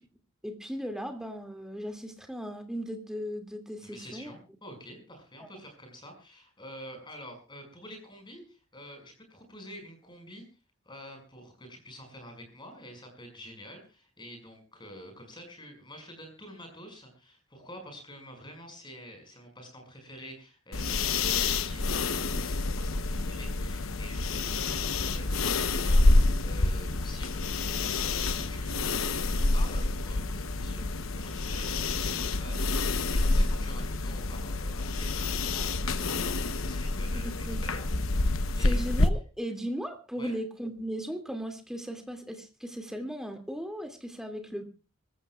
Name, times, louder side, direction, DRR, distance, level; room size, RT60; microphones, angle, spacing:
voice 1, 0.4-4.3 37.1-37.6 38.6-44.6, equal, 5° right, 5 dB, 2.4 m, -37 dB
voice 2, 3.8-10.4 10.8-26.1 26.4-38.0 38.6-38.8 40.1-40.4, equal, 25° left, 4 dB, 5.9 m, -48 dB
sound 1, 20.7-39.1, left 2 dB, 70° left, 1.0 m, -28 dB
25.0 x 14.5 x 2.4 m, 0.33 s
head